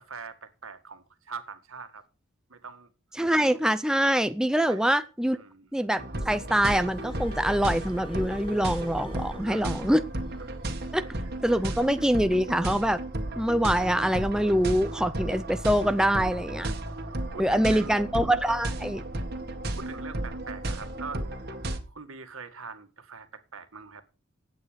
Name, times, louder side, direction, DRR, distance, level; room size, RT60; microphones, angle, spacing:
voice 1, 0.0-2.0 2.5-2.9 4.6-5.0 5.3-5.7 9.4-10.1 10.4-10.6 11.0-11.8 17.3-18.1 19.7-21.2 21.9-24.0, right 5 dB, 85° right, 2.0 m, -43 dB
voice 2, 3.2-5.4 5.7-10.0 10.9-11.0 11.4-13.0 13.4-16.7 17.4-19.0, equal, 5° right, 0.5 m, -24 dB
sound 1, 6.0-21.8, right 1 dB, 50° right, 1.9 m, -34 dB
Glass, 6.8-10.4 11.4-11.6, left 2 dB, 25° left, 3.9 m, -42 dB
15.0 x 9.0 x 5.2 m
head